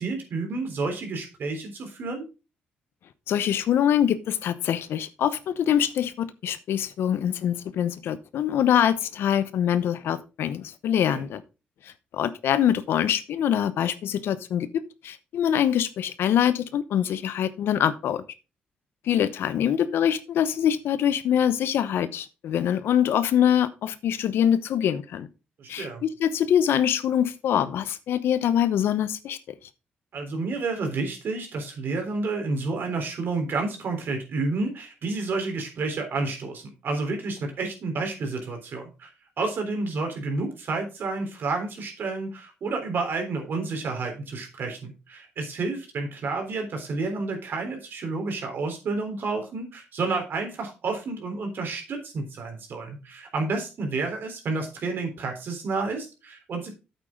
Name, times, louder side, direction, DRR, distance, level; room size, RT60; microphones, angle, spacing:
voice 1, 0.0-2.2 11.0-11.2 25.6-26.0 30.1-39.1 39.4-56.7, right 3 dB, 60° right, 3 dB, 3.6 m, -30 dB
voice 2, 3.3-11.4 12.1-14.7 15.0-18.2 19.1-25.3 25.7-29.4, left 9 dB, 75° left, 14 dB, 0.8 m, -24 dB
8.4 x 8.2 x 3.7 m, 0.30 s
supercardioid pair, 65°, 4 cm